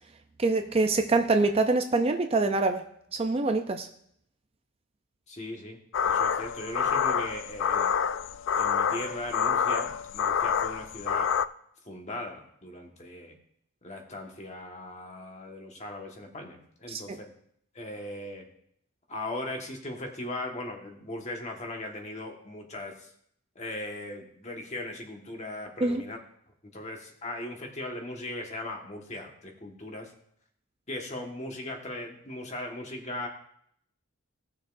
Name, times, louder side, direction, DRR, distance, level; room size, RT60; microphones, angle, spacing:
voice 1, 0.4-2.8 3.1-3.9 16.9-17.0 25.8-26.0, right 3 dB, 30° right, 6 dB, 0.5 m, -25 dB
voice 2, 5.3-7.9 8.5-11.3 11.8-13.3 13.8-17.2 17.7-18.4 19.1-23.1 23.5-26.2 26.7-30.1 30.9-33.3, left 1 dB, 35° left, 1 dB, 1.5 m, -38 dB
sound 1, 5.9-11.5, left 7 dB, 60° left, 0.3 m, -27 dB
17.5 x 6.4 x 2.6 m, 0.69 s
head